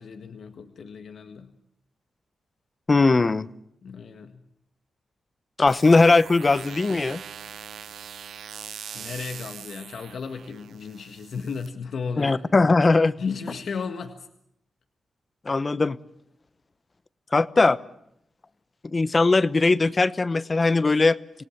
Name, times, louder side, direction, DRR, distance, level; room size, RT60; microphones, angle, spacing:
voice 1, 0.0-1.5 3.8-4.4 8.9-12.5 13.2-14.3, left 5 dB, 75° left, 6 dB, 1.7 m, -34 dB
voice 2, 2.9-3.5 5.6-7.2 12.2-13.1 15.5-16.0 17.3-17.8 18.9-21.4, left 3 dB, 35° left, 16 dB, 0.9 m, -19 dB
sound 1, 5.7-11.7, right 8 dB, 85° right, 0.8 m, -42 dB
27.0 x 18.0 x 7.3 m, 0.77 s
cardioid pair, 65°, 0 cm